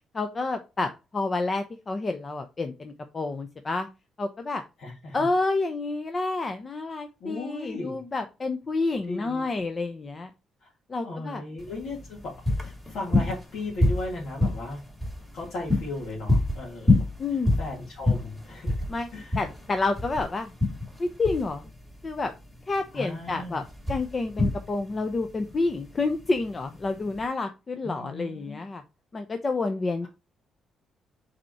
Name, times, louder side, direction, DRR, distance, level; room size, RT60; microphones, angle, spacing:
voice 1, 0.1-3.9 4.2-4.6 5.1-10.3 10.9-11.4 17.2-17.5 18.9-19.1 19.3-20.5 21.0-21.6 22.0-22.3 22.7-28.8 29.1-30.1, left 3 dB, 35° left, 7 dB, 0.7 m, -29 dB
voice 2, 4.8-5.3 7.2-8.0 9.1-9.4 10.6-10.7 11.0-14.8 15.3-17.0 17.3-18.8 19.1-19.4 22.9-23.6 27.8-28.6, left 2 dB, 70° left, -4 dB, 2.5 m, -36 dB
sound 1, 11.6-27.2, left 2 dB, 10° left, 2.7 m, -28 dB
5.1 x 4.3 x 4.5 m, 0.28 s
cardioid pair, 90°, 0 cm